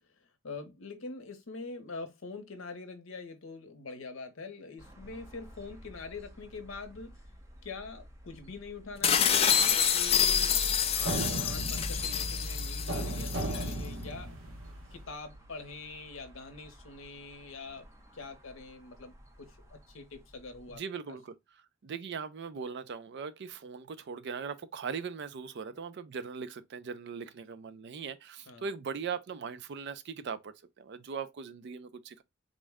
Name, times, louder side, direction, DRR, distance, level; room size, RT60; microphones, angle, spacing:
voice 1, 0.2-7.1 7.6-10.6 10.9-14.3 14.9-17.9 18.1-20.8 28.5-28.6, left 3 dB, 70° left, 0.7 m, -44 dB
sound 1, 4.8-20.7, equal, 15° right, 0.6 m, -45 dB
sound 2, 9.0-13.7, left 8 dB, 30° left, 0.4 m, -27 dB
sound 3, 10.1-14.9, right 2 dB, 70° right, 0.8 m, -38 dB
voice 2, 20.7-32.2, right 6 dB, 55° right, 0.4 m, -40 dB
3.7 x 2.1 x 3.4 m
head